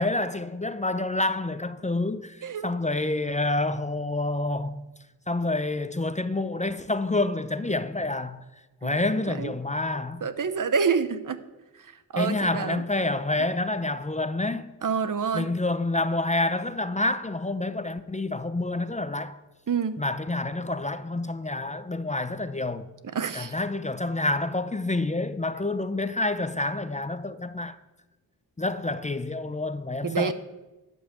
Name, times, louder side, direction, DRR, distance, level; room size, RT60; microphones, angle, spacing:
voice 1, 0.0-4.8 5.3-8.4 8.8-10.3 12.2-14.7 15.3-19.4 20.0-22.9 23.3-27.8 28.6-30.3, left 2 dB, 20° left, 0.6 m, -28 dB
voice 2, 10.2-11.4 11.8-12.8 14.8-15.5 19.7-20.0 23.0-23.5 30.0-30.3, right 6 dB, 55° right, 0.9 m, -28 dB
11.5 x 5.5 x 8.2 m
cardioid pair, 45°, 39 cm